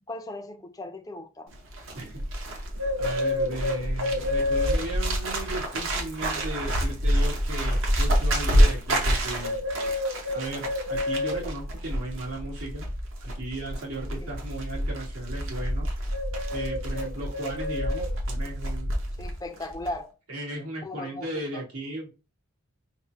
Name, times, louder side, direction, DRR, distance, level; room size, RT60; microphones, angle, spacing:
voice 1, 0.1-1.5 14.2-14.3 19.2-20.1 20.8-21.7, left 2 dB, 15° left, 0.4 m, -37 dB
Bird, 1.5-19.4 19.6-19.9, equal, 70° right, 0.9 m, -27 dB
voice 2, 3.0-9.6 10.3-12.9 13.2-15.9 16.5-18.9 20.3-22.1, right 1 dB, 85° right, 1.8 m, -36 dB
4.2 x 2.1 x 4.5 m
head